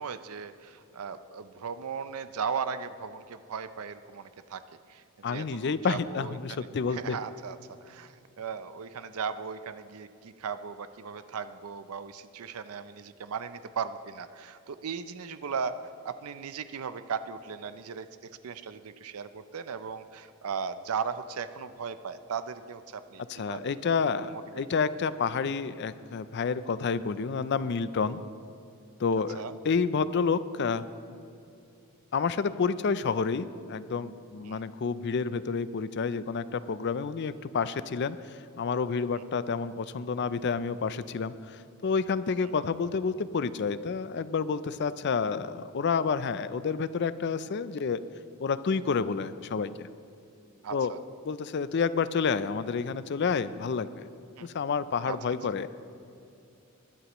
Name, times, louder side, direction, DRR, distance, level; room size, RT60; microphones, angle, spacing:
voice 1, 0.0-4.6 4.9-6.6 6.9-23.7 24.2-24.6 29.3-29.5 34.5-34.6 39.1-39.2 50.6-51.0 54.4-54.5 55.0-55.2, right 6 dB, 80° right, 12 dB, 0.5 m, -37 dB
voice 2, 5.2-7.2 23.3-28.2 29.0-30.9 32.1-48.0 48.4-49.9 50.7-50.9 51.3-54.1 54.4-55.7, left 5 dB, 50° left, 14 dB, 0.4 m, -29 dB
20.5 x 11.0 x 3.0 m, 2.6 s
head